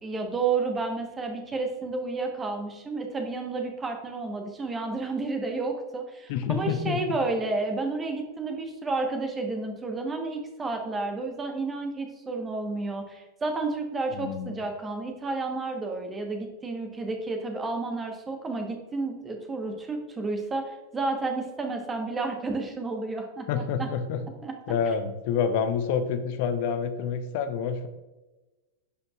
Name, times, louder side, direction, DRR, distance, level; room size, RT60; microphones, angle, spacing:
voice 1, 0.0-23.9 24.4-24.5, right 3 dB, 15° right, 4 dB, 1.2 m, -31 dB
voice 2, 6.3-7.0 14.1-14.6 23.5-24.2 24.7-27.9, left 7 dB, 50° left, 10 dB, 0.6 m, -28 dB
11.0 x 5.2 x 2.4 m, 1.1 s
figure-of-eight pair, 90°, 0 cm